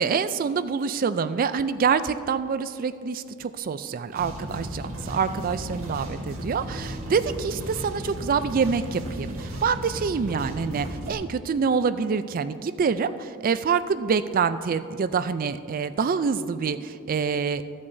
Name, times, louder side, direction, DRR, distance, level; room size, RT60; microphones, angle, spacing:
voice 1, 0.0-17.6, right 5 dB, 40° right, 13 dB, 0.3 m, -26 dB
sound 1, 4.1-11.1, equal, 75° right, 1.5 m, -35 dB
15.0 x 8.5 x 2.7 m, 2.3 s
head